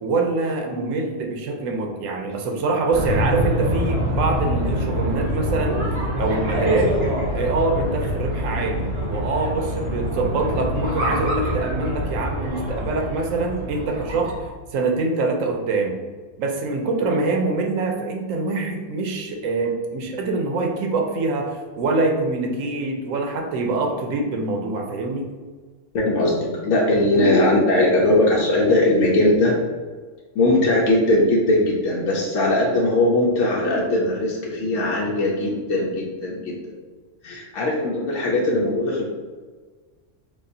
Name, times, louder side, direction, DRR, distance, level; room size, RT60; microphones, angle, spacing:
voice 1, 0.0-5.8 6.2-7.0 7.3-14.3 14.7-16.0 16.4-25.3, right 3 dB, 90° right, 2 dB, 1.0 m, -24 dB
sound 1, 2.9-14.4, equal, 50° right, 1.8 m, -25 dB
voice 2, 25.9-29.6 30.4-36.5 37.2-39.0, left 1 dB, 90° left, -3 dB, 1.1 m, -20 dB
6.4 x 2.4 x 2.6 m, 1.5 s
omnidirectional pair, 1.3 m